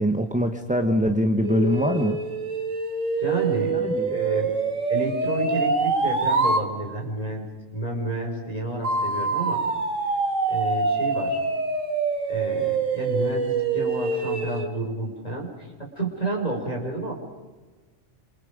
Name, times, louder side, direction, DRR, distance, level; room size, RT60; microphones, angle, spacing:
voice 1, 0.0-2.2 3.7-4.1, equal, 5° right, 6 dB, 1.2 m, -23 dB
sound 1, 1.4-6.7 8.8-14.7, right 4 dB, 75° right, 2.3 m, -25 dB
voice 2, 3.2-3.8 4.1-4.5 4.9-7.5 7.7-9.6 10.5-11.4 12.3-15.7 16.0-17.1, right 2 dB, 30° left, 1 dB, 5.6 m, -30 dB
28.0 x 27.5 x 5.3 m, 1.3 s
omnidirectional pair, 1.4 m